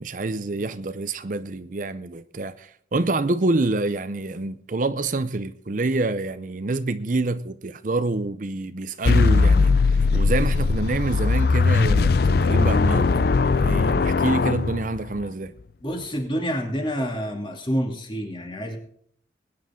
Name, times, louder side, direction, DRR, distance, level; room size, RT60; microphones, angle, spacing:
voice 1, 0.0-15.5, right 2 dB, 45° right, 0.6 m, -27 dB
sound 1, 9.0-15.2, left 4 dB, 55° left, 0.4 m, -19 dB
voice 2, 15.8-18.8, equal, 25° left, 2.6 m, -28 dB
21.0 x 9.8 x 3.7 m
head